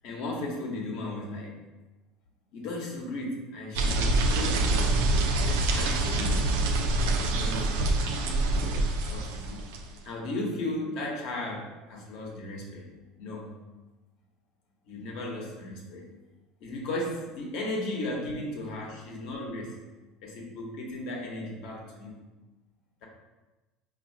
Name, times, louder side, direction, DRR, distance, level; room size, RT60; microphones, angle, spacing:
voice 1, 0.0-1.6 2.5-5.1 5.7-7.0 7.3-8.2 8.5-9.7 10.0-12.9 13.2-13.5 14.8-16.1 16.6-19.8 20.2-22.2, left 1 dB, 65° left, -1 dB, 1.0 m, -36 dB
sound 1, 3.7-10.0, right 2 dB, 85° right, 0.5 m, -26 dB
4.6 x 2.7 x 2.7 m, 1.1 s
supercardioid pair, 130°, 0 cm